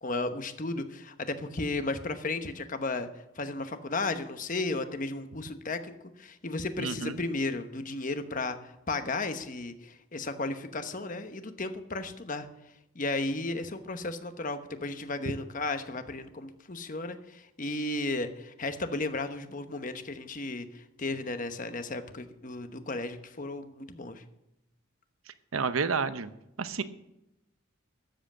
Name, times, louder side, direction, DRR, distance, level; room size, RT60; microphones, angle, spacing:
voice 1, 0.0-3.1 3.3-12.5 12.9-24.2, left 2 dB, 40° left, 9 dB, 1.1 m, -34 dB
voice 2, 6.8-7.2 25.5-26.3 26.6-26.8, right 5 dB, 90° right, 12 dB, 0.8 m, -30 dB
13.0 x 7.8 x 7.4 m, 0.89 s
head